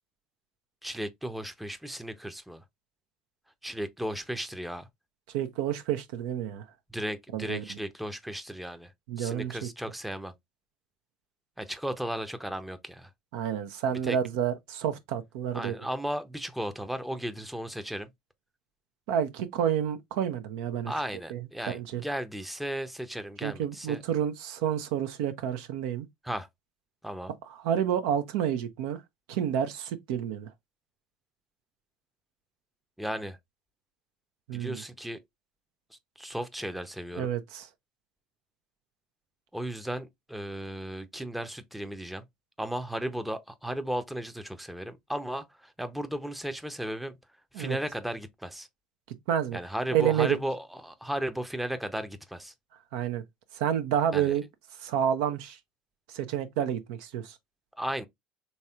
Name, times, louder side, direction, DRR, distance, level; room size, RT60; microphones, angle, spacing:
voice 1, 0.8-2.6 3.6-4.9 6.9-8.9 9.2-10.3 11.6-13.1 13.9-14.2 15.5-18.1 20.9-24.0 26.2-26.5 27.0-27.3 33.0-33.4 34.5-35.2 36.2-37.3 39.5-42.2 42.6-47.2 47.5-48.7 49.5-52.5 54.1-54.3 57.8-58.1, equal, ahead, 0.6 m, -35 dB
voice 2, 5.3-6.6 7.3-7.8 9.1-9.7 13.3-15.7 19.1-20.9 21.3-21.4 21.7-22.0 23.4-26.1 27.5-29.0 29.3-30.5 34.5-34.8 37.1-37.7 47.5-47.8 49.3-49.6 49.9-50.4 52.9-53.2 53.5-54.4 54.8-55.6 56.1-57.4, right 9 dB, 70° right, 0.6 m, -29 dB
4.1 x 3.2 x 2.3 m
hypercardioid pair, 70°, 4 cm